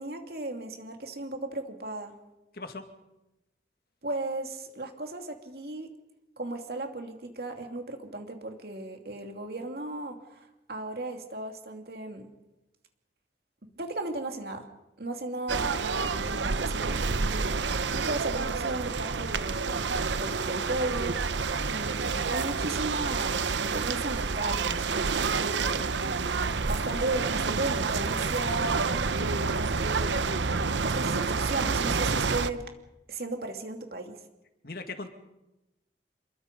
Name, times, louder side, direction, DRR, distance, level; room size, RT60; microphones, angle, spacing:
voice 1, 0.0-2.1 4.0-5.9 6.4-12.3 13.8-14.7 15.0-19.9 20.1-25.9 26.3-30.4 30.8-32.6 33.1-34.2, right 2 dB, 60° right, 4 dB, 2.8 m, -36 dB
sound 1, 15.5-32.5, right 4 dB, 90° right, 0.9 m, -29 dB
voice 2, 34.6-35.1, left 3 dB, 55° left, 7 dB, 2.1 m, -38 dB
28.0 x 22.0 x 5.3 m, 0.97 s
head